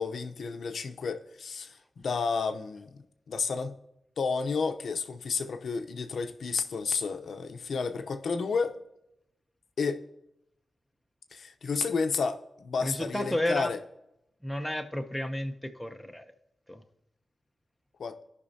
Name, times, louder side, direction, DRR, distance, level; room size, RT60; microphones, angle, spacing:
voice 1, 0.0-1.7 2.0-3.0 3.3-3.7 4.2-8.8 9.8-10.0 11.3-13.8 18.0-18.2, left 5 dB, 70° left, 6 dB, 0.7 m, -31 dB
voice 2, 12.8-13.7 14.4-16.3 16.7-16.8, left 1 dB, 5° left, 5 dB, 0.7 m, -32 dB
16.0 x 5.4 x 2.7 m, 0.85 s
wide cardioid pair, 135°, 0 cm